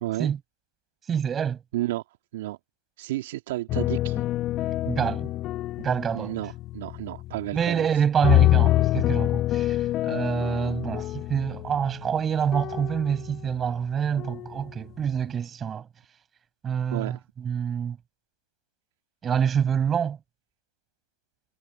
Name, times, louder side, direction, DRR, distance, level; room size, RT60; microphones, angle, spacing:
voice 1, 0.0-0.3 1.7-2.0 2.3-2.6 3.0-4.2 6.1-7.9 16.9-17.2, right 16 dB, 60° right, 1.9 m, -31 dB
voice 2, 1.1-1.6 4.8-5.3 5.8-6.3 7.5-15.9 16.6-18.0 19.2-20.2, right 8 dB, 20° right, 5.3 m, -26 dB
sound 1, 3.7-7.8 8.2-13.7 14.2-14.7, left 15 dB, 35° left, 1.0 m, -26 dB
hypercardioid pair, 115°, 0 cm